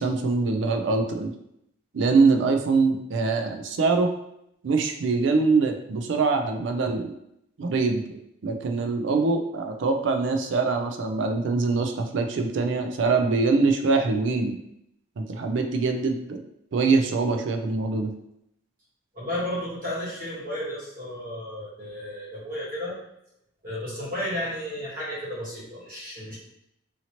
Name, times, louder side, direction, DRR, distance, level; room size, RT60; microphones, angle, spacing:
voice 1, 0.0-1.3 1.9-4.1 4.6-7.1 7.6-8.2 8.4-14.6 15.2-16.4 16.7-18.1, right 4 dB, 65° right, 5 dB, 0.4 m, -23 dB
voice 2, 19.1-23.0 23.6-26.4, left 1 dB, 45° right, -6 dB, 1.2 m, -33 dB
2.8 x 2.8 x 2.8 m, 0.77 s
head